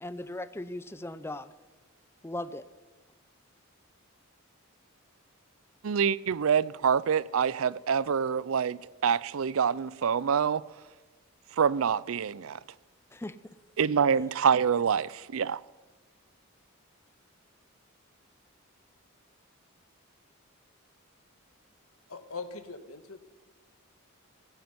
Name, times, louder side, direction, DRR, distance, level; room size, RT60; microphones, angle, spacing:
voice 1, 0.0-1.5 2.2-2.6 13.1-13.5 14.1-14.3, left 1 dB, 10° left, 0.5 m, -38 dB
voice 2, 5.8-10.6 11.6-12.6 13.8-15.6, right 7 dB, 70° right, 0.5 m, -26 dB
voice 3, 22.1-23.2, left 4 dB, 90° left, 1.5 m, -41 dB
16.0 x 9.5 x 9.4 m
head